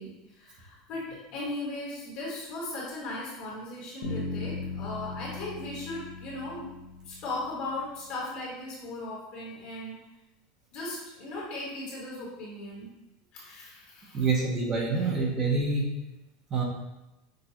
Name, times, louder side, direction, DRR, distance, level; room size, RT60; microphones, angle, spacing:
voice 1, 0.0-6.6 7.0-9.9 10.7-12.9 13.3-14.3 14.9-15.1, left 2 dB, 45° left, -6 dB, 1.4 m, -37 dB
Bass guitar, 4.0-7.9, left 3 dB, 70° left, 0.9 m, -38 dB
voice 2, 14.1-15.9 16.5-16.6, right 4 dB, 25° right, -2 dB, 0.7 m, -26 dB
6.2 x 2.2 x 2.9 m, 0.96 s
supercardioid pair, 170°, 2 cm